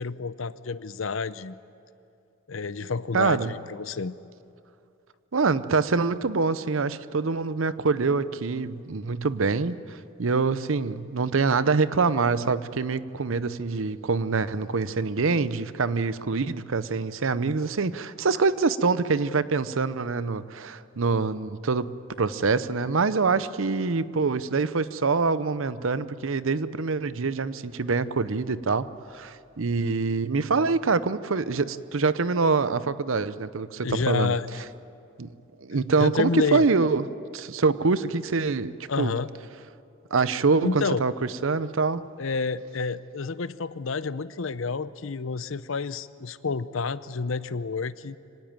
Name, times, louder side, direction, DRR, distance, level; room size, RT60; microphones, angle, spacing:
voice 1, 0.0-1.6 2.5-4.2 33.8-34.6 35.9-36.6 38.9-39.3 40.6-41.0 42.2-48.2, left 4 dB, 70° left, 15 dB, 0.7 m, -29 dB
voice 2, 3.1-3.5 5.3-34.4 35.2-35.3 35.6-37.1 37.3-39.1 40.1-41.1 41.4-42.0, right 4 dB, 75° right, 15 dB, 0.7 m, -25 dB
25.0 x 18.0 x 9.0 m, 2.6 s
head